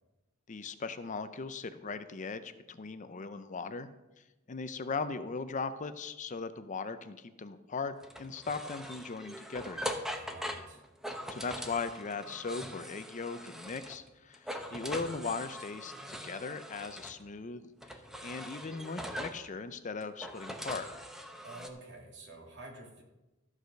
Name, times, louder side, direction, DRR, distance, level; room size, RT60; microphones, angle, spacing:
voice 1, 0.5-3.9 4.2-10.0 11.3-20.9, left 4 dB, 40° left, 11 dB, 0.6 m, -39 dB
sound 1, 8.0-14.1 14.3-17.2 17.8-19.5 20.0-21.7, equal, ahead, 0.9 m, -42 dB
voice 2, 10.1-10.8 21.4-23.0, right 2 dB, 60° right, -1 dB, 2.7 m, -49 dB
14.0 x 4.9 x 6.4 m, 1.0 s
head